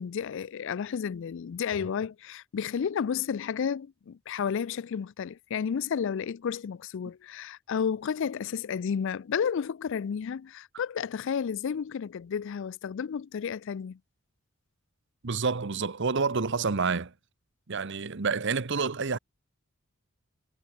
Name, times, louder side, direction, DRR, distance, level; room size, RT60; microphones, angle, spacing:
voice 1, 0.0-14.0, left 7 dB, 65° left, 0.4 m, -32 dB
voice 2, 15.2-17.1 17.7-19.2, right 4 dB, 60° right, 0.9 m, -28 dB
head